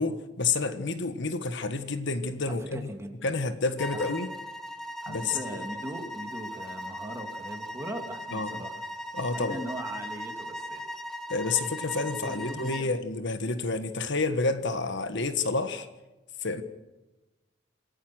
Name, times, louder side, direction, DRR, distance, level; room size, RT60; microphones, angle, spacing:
voice 1, 0.0-2.9 3.2-4.3 5.1-5.4 8.3-8.6 9.1-9.6 11.3-15.9 16.4-16.6, left 3 dB, 65° left, 10 dB, 1.5 m, -29 dB
voice 2, 2.5-3.3 3.9-4.1 5.0-8.8 9.3-10.8 12.2-12.9, right 1 dB, 15° right, 3 dB, 3.0 m, -40 dB
sound 1, 3.8-12.9, equal, ahead, 1.6 m, -38 dB
27.0 x 17.0 x 6.3 m, 1.1 s
head